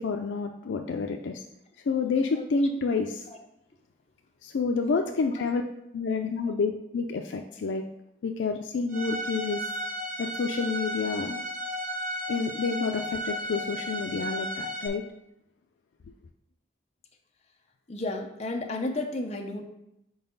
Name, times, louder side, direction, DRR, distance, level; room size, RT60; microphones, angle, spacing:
voice 1, 0.0-1.4 1.9-3.2 4.4-5.6 5.9-7.9 8.2-9.7 10.2-11.4 12.3-15.0, left 4 dB, 90° left, 4 dB, 0.4 m, -29 dB
Bowed string instrument, 8.9-14.9, equal, 45° right, 0.7 m, -34 dB
voice 2, 17.9-19.6, left 2 dB, 35° left, 3 dB, 0.6 m, -32 dB
4.7 x 3.9 x 5.3 m, 0.84 s
head